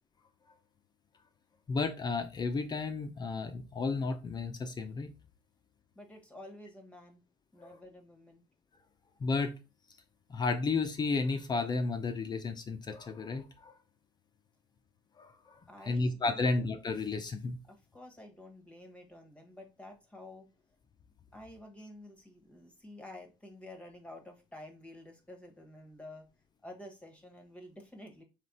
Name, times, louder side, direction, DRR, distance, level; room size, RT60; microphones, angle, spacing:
voice 1, 1.7-5.1 7.6-7.8 9.2-9.5 10.3-13.7 15.2-15.3 15.8-17.6, left 3 dB, 30° left, 7 dB, 0.6 m, -32 dB
voice 2, 5.9-7.2 7.5-8.4 15.7-16.6 17.6-20.5 21.3-26.3 26.6-28.2, left 1 dB, 10° left, 3 dB, 1.1 m, -50 dB
3.3 x 3.2 x 4.1 m, 0.29 s
supercardioid pair, 85°, 14 cm